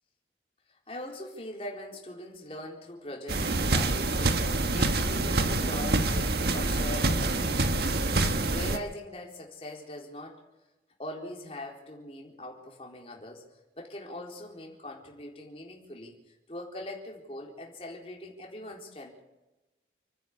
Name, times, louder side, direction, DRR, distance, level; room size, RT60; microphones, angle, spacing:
voice 1, 0.7-10.4 11.0-13.4 13.8-16.2 16.5-19.2, left 1 dB, 35° left, -1 dB, 4.3 m, -42 dB
sound 1, 3.3-8.8, right 2 dB, 65° right, 1.5 m, -26 dB
30.0 x 10.0 x 8.5 m, 1.0 s
head